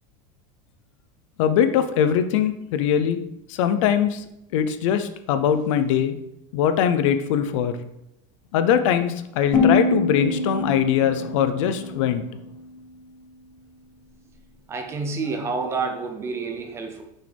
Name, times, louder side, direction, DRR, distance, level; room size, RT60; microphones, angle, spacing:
voice 1, 1.4-3.2 3.5-4.2 4.5-6.2 6.5-7.8 8.5-12.2, left 9 dB, 65° left, 10 dB, 0.6 m, -21 dB
sound 1, 9.5-12.5, left 3 dB, 15° left, 1.9 m, -25 dB
voice 2, 14.7-17.0, right 4 dB, 15° right, 5 dB, 0.5 m, -28 dB
6.4 x 6.2 x 3.4 m, 0.80 s
supercardioid pair, 175°, 17 cm